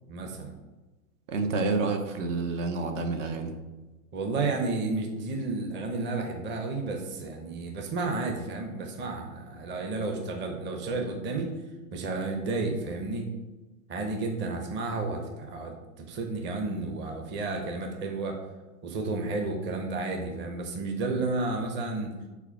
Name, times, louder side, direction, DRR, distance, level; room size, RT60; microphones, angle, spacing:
voice 1, 0.1-0.5 4.1-11.5 11.9-13.3 13.9-18.4 18.8-22.1, right 3 dB, 25° right, 3 dB, 0.9 m, -32 dB
voice 2, 1.3-3.5, right 3 dB, 55° right, 5 dB, 1.1 m, -29 dB
4.8 x 4.5 x 5.8 m, 1.2 s
hypercardioid pair, 115°, 45 cm